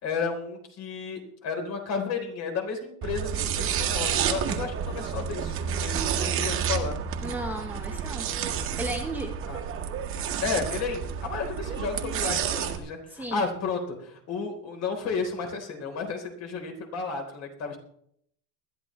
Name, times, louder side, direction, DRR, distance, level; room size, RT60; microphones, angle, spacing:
voice 1, 0.0-7.0 9.5-9.6 10.4-17.8, left 5 dB, 45° left, 3 dB, 3.9 m, -32 dB
sound 1, 3.0-12.8, right 8 dB, 35° right, 1.7 m, -30 dB
voice 2, 7.2-8.3 8.8-9.3 13.1-13.4, right 1 dB, 5° right, 1 dB, 1.1 m, -34 dB
20.5 x 12.5 x 3.2 m, 0.69 s
cardioid pair, 150°, 36 cm